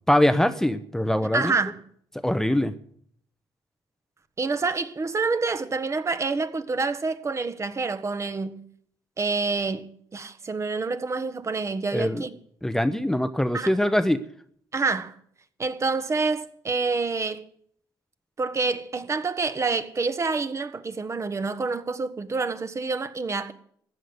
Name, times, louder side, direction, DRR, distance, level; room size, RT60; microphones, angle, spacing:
voice 1, 0.1-1.5 2.2-2.7 11.9-12.2 12.6-14.2, left 1 dB, 5° left, 0.9 m, -22 dB
voice 2, 1.3-1.8 4.4-8.6 9.2-12.3 13.5-13.7 14.7-15.1 15.6-17.4 18.4-23.5, right 4 dB, 35° right, 1.4 m, -27 dB
14.5 x 10.5 x 8.0 m
cardioid pair, 90°, 9 cm